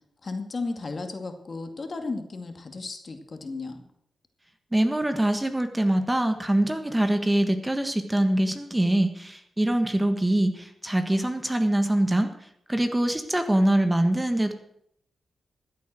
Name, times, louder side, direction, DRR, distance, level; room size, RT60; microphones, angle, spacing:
voice 1, 0.2-3.8, left 3 dB, 45° left, 6 dB, 2.3 m, -34 dB
voice 2, 4.7-12.3 12.7-14.5, right 1 dB, 15° right, 8 dB, 1.6 m, -24 dB
14.0 x 8.4 x 7.7 m, 0.73 s
cardioid pair, 65°, 0 cm